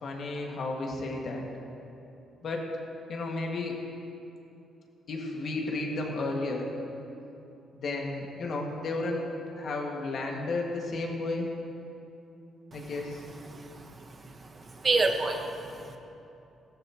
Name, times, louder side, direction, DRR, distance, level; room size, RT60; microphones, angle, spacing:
voice 1, 0.0-1.4 2.4-2.7 3.1-3.8 5.1-6.7 7.7-9.2 9.6-11.5 12.7-13.2, left 2 dB, 60° left, 0 dB, 2.0 m, -33 dB
voice 2, 13.5-13.8 14.8-16.0, right 3 dB, 35° right, 4 dB, 1.3 m, -28 dB
17.0 x 13.5 x 3.0 m, 2.8 s
cardioid pair, 90°, 0 cm